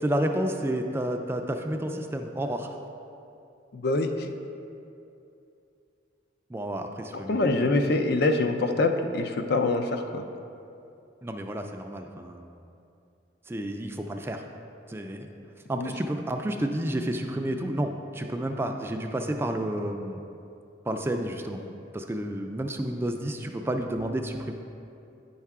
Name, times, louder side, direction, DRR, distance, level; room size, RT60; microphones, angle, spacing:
voice 1, 0.0-2.7 6.5-7.4 11.2-12.5 13.5-14.4 14.9-15.2 15.7-20.2 20.8-21.6 21.9-24.5, right 1 dB, 15° right, 4 dB, 0.3 m, -30 dB
voice 2, 3.7-4.3 7.1-10.3 15.8-15.9, left 2 dB, 60° left, 6 dB, 0.5 m, -25 dB
9.4 x 5.6 x 3.6 m, 2.7 s
head